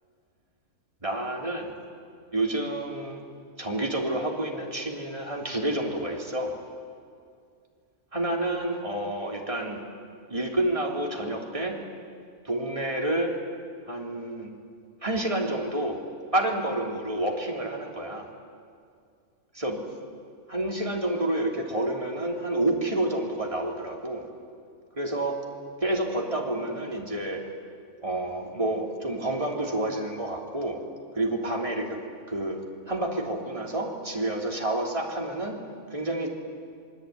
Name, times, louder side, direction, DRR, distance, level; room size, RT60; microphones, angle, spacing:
voice 1, 1.0-1.7 2.3-3.2 3.6-6.6 8.1-9.8 10.3-11.8 12.4-13.3 13.9-14.5 15.0-16.0 16.3-18.3 19.5-19.8 20.5-24.2 25.0-25.4 25.8-27.4 28.0-30.8 31.1-32.0 32.3-32.6 32.9-35.5 35.9-36.3, right 1 dB, 20° right, 0 dB, 3.3 m, -29 dB
27.0 x 22.0 x 9.4 m, 2.3 s
omnidirectional pair, 1.6 m